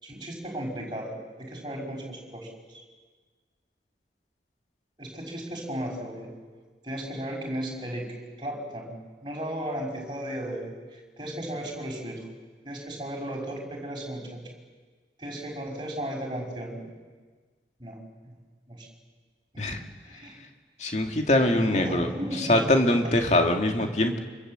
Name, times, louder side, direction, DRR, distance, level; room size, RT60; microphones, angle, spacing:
voice 1, 0.0-2.8 5.0-6.3 6.8-9.0 9.2-12.2 12.6-14.4 15.2-16.9 17.8-18.0 18.2-18.3 18.7-18.9 19.5-19.8 20.1-20.4 21.4-22.7 23.8-23.9, right 1 dB, 25° right, 0 dB, 5.8 m, -35 dB
voice 2, 20.8-22.1 22.4-24.2, left 1 dB, 40° left, 3 dB, 2.4 m, -23 dB
26.0 x 26.0 x 7.7 m, 1.5 s
head